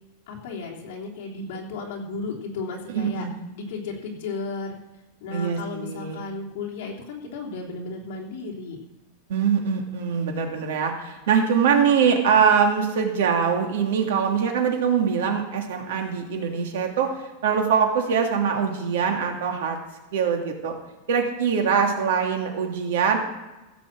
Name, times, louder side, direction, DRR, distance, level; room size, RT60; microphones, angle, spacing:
voice 1, 0.3-3.3 3.5-4.8 5.2-8.8, left 3 dB, 50° left, -2 dB, 3.3 m, -34 dB
voice 2, 2.9-3.3 5.3-6.2 9.3-17.1 17.4-19.8 20.1-20.7 21.1-23.2, right 6 dB, 70° right, 3 dB, 2.5 m, -23 dB
15.5 x 6.0 x 7.5 m, 1.1 s
supercardioid pair, 180°, 0 cm